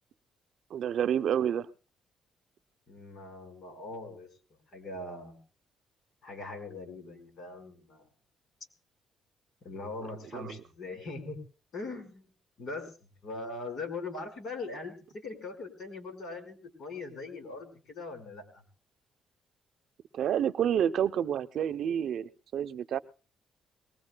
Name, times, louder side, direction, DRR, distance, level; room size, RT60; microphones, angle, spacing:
voice 1, 0.7-1.7 10.3-10.5 20.1-23.0, right 9 dB, 70° right, 0.6 m, -29 dB
voice 2, 2.9-4.3 4.7-5.4 6.2-8.1 9.6-11.4 11.7-12.3 12.6-12.9 13.2-18.6, left 3 dB, 60° left, 4.9 m, -41 dB
23.0 x 19.5 x 2.3 m
cardioid pair, 90°, 0 cm